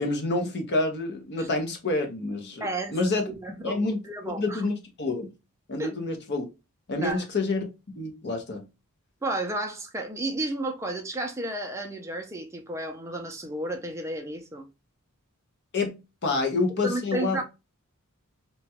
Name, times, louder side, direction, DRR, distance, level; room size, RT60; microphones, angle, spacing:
voice 1, 0.0-3.3 3.6-4.0 4.4-5.3 5.7-6.5 6.9-7.6 8.0-8.7 15.7-17.4, left 3 dB, 50° left, 0.7 m, -28 dB
voice 2, 2.6-4.6 5.8-5.9 7.0-7.2 9.2-14.6 16.3-16.4 16.8-17.4, right 1 dB, 15° right, 0.5 m, -32 dB
2.9 x 2.2 x 2.7 m
head